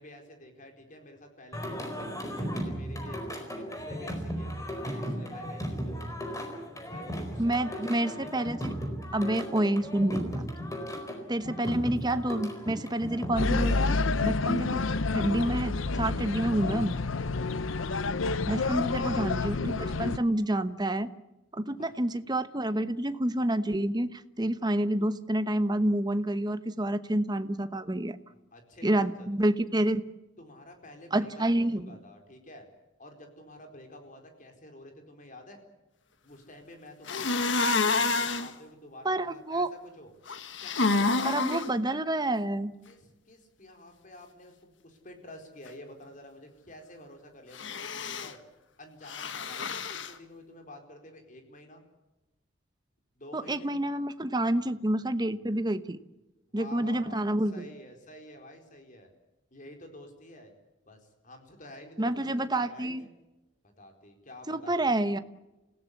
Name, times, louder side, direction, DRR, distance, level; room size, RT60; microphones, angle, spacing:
voice 1, 0.0-6.1 6.9-8.5 10.9-11.2 18.6-19.0 19.8-20.3 21.7-21.9 28.3-29.3 30.4-32.7 33.0-35.6 36.2-40.1 40.6-41.6 42.8-48.4 48.8-51.8 53.2-53.7 56.5-59.1 59.5-60.5 60.9-63.1 63.8-65.0, left 1 dB, 40° left, 4 dB, 4.5 m, -49 dB
Singing, 1.5-13.9, equal, 15° left, 4.5 m, -36 dB
voice 2, 7.4-8.7 9.1-10.4 11.3-14.8 15.1-16.9 18.5-21.1 21.5-28.2 28.8-30.0 31.1-32.0 39.0-39.7 41.2-42.7 53.3-56.0 56.5-57.7 62.0-63.0 64.5-65.2, right 1 dB, 20° right, 11 dB, 1.0 m, -28 dB
sound 1, 13.4-20.2, left 3 dB, 90° left, 0.8 m, -29 dB
sound 2, 37.1-38.5 40.3-41.7 47.5-48.3 49.1-50.1, left 3 dB, 70° left, 1.5 m, -28 dB
28.5 x 17.0 x 8.4 m, 1.0 s
head